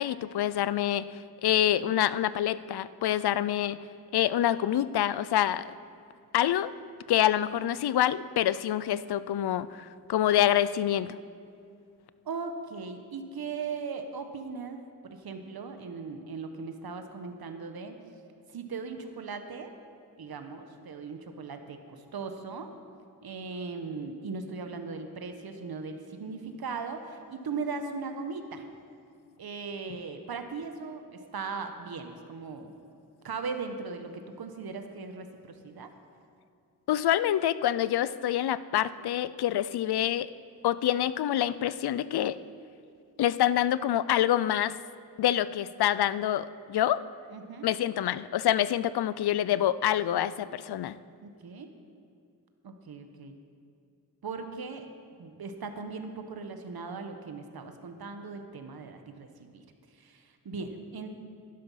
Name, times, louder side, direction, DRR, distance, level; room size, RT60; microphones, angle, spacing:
voice 1, 0.0-3.8 4.1-5.7 6.3-6.7 7.1-11.2 36.9-40.3 40.6-42.4 43.2-44.7 45.2-47.0 47.6-51.0, left 11 dB, 75° left, 16 dB, 0.5 m, -26 dB
voice 2, 12.2-18.0 18.5-19.7 20.2-22.7 23.2-28.7 29.4-32.7 33.2-35.9 47.3-47.7 51.2-51.7 52.6-53.4 54.2-54.9 55.2-59.6 59.9-61.1, right 4 dB, 70° right, 7 dB, 1.2 m, -38 dB
11.5 x 11.5 x 5.6 m, 2.4 s
cardioid pair, 65°, 39 cm